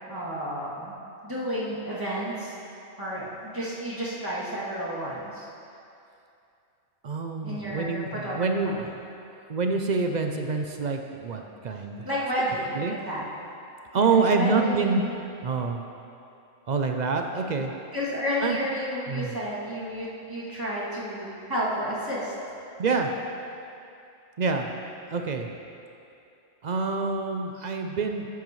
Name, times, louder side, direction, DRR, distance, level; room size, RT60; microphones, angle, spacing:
voice 1, 0.1-0.9 1.2-2.5 3.0-5.5 7.4-8.7 12.0-13.2 13.9-15.1 17.9-22.3, equal, 15° right, -9 dB, 2.5 m, -31 dB
voice 2, 7.0-8.9 9.5-12.1 12.8-13.0 13.9-15.0 15.4-15.8 16.7-17.7 18.4-18.6 19.1-19.4 22.8-23.1 24.4-24.7 25.1-25.5 26.6-28.3, right 4 dB, 55° right, 4 dB, 0.5 m, -26 dB
13.0 x 9.3 x 3.1 m, 2.6 s
omnidirectional pair, 1.4 m